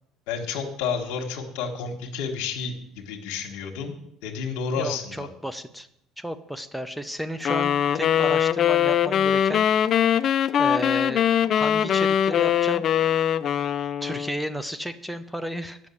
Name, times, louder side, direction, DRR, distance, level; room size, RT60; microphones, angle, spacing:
voice 1, 0.3-3.9 4.2-5.3, left 5 dB, 85° left, 1 dB, 1.4 m, -30 dB
voice 2, 4.8-5.9 6.2-9.7 10.6-12.9 14.0-15.8, equal, ahead, 11 dB, 0.7 m, -33 dB
sound 1, 7.5-14.4, left 9 dB, 45° left, 0.4 m, -22 dB
8.9 x 6.3 x 8.4 m, 0.76 s
cardioid pair, 110°, 0 cm